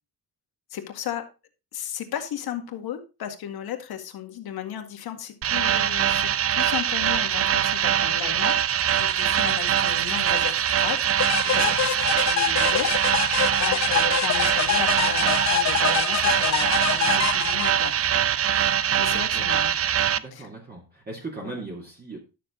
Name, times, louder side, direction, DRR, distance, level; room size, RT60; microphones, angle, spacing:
voice 1, 0.7-1.2 1.7-8.6 8.9-10.6 10.8-11.0 11.5-13.2 13.6-17.9 18.5-19.8 20.3-20.5 21.4-21.6, left 10 dB, 75° left, 5 dB, 2.0 m, -34 dB
sound 1, 5.4-20.2, right 9 dB, 40° right, 0.5 m, -23 dB
sound 2, 5.9-15.1, right 8 dB, 90° right, 1.8 m, -44 dB
sound 3, 11.2-18.1, left 10 dB, 45° left, 0.9 m, -26 dB
voice 2, 11.4-11.7 19.1-19.6 20.1-22.2, right 3 dB, 25° right, -2 dB, 2.6 m, -39 dB
12.0 x 6.8 x 3.9 m, 0.30 s
cardioid pair, 140°, 37 cm